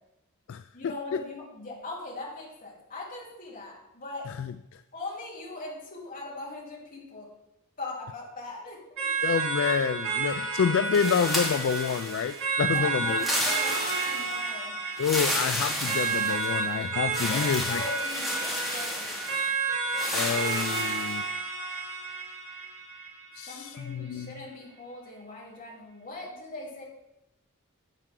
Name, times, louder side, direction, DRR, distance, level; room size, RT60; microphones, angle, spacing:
voice 1, 0.7-4.3 4.9-7.3 7.8-9.1 10.3-10.4 12.7-14.8 17.3-19.4 23.5-26.8, left 2 dB, 40° left, -4 dB, 3.3 m, -40 dB
voice 2, 4.3-4.8 9.2-13.3 15.0-17.8 20.1-21.3 23.3-24.4, left 6 dB, 65° left, 12 dB, 0.3 m, -28 dB
sound 1, 9.0-23.9, right 4 dB, 70° right, 4.6 m, -31 dB
sound 2, 10.9-12.4 13.1-14.4 15.0-16.6 17.1-19.5 19.9-21.2, equal, ahead, 2.2 m, -32 dB
12.0 x 8.6 x 3.8 m, 0.88 s
head